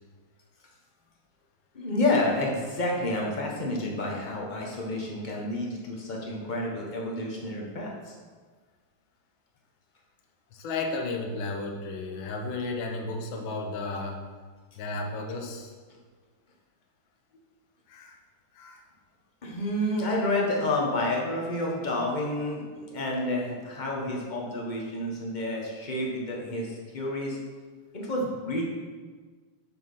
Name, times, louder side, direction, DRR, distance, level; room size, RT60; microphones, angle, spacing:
voice 1, 1.7-8.2 19.4-27.4 27.9-28.6, left 1 dB, 25° left, -2 dB, 1.1 m, -29 dB
voice 2, 10.5-14.2 14.8-15.7 17.9-18.2 18.5-18.8, left 3 dB, 70° left, 2 dB, 1.7 m, -33 dB
6.7 x 6.0 x 5.5 m, 1.5 s
omnidirectional pair, 2.4 m